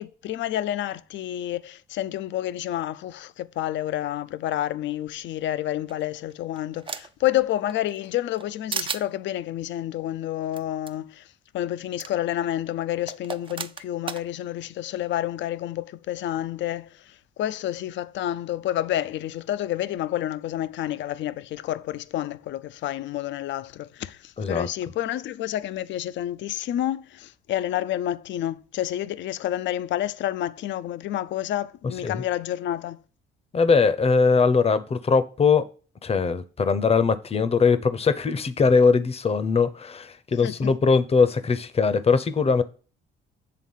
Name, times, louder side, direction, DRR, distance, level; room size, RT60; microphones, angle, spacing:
voice 1, 0.0-11.3 11.5-33.0 40.4-40.8, left 12 dB, 70° left, 0.4 m, -29 dB
sound 1, 5.9-7.3 7.7-8.4 8.7-9.0 10.5-10.6 10.9-11.0 12.0-12.1 13.1-14.2, right 5 dB, 25° right, 0.4 m, -33 dB
voice 2, 24.4-24.7 32.0-32.2 33.5-35.6 36.0-42.6, left 5 dB, 30° left, 0.6 m, -21 dB
7.7 x 3.6 x 5.5 m
cardioid pair, 90°, 20 cm